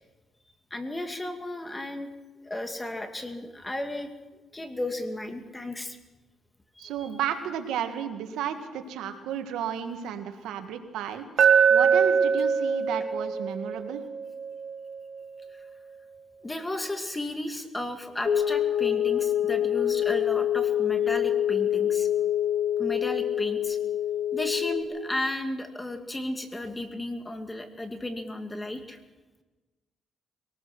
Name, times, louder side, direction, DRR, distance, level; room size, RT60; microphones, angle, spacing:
voice 1, 0.7-2.1 2.4-4.1 4.5-6.0 6.8-7.1 13.7-13.8 15.5-15.7 16.4-22.1 22.8-23.8 24.3-29.0, left 1 dB, 15° left, 6 dB, 2.5 m, -34 dB
voice 2, 6.8-11.3 11.7-14.0, right 8 dB, 85° right, 7 dB, 1.9 m, -33 dB
Glass, 11.4-15.5, right 7 dB, 70° right, 1.7 m, -24 dB
sound 1, 18.2-24.8, left 10 dB, 50° left, 3.0 m, -26 dB
22.5 x 18.5 x 6.2 m, 1.2 s
cardioid pair, 90°, 0 cm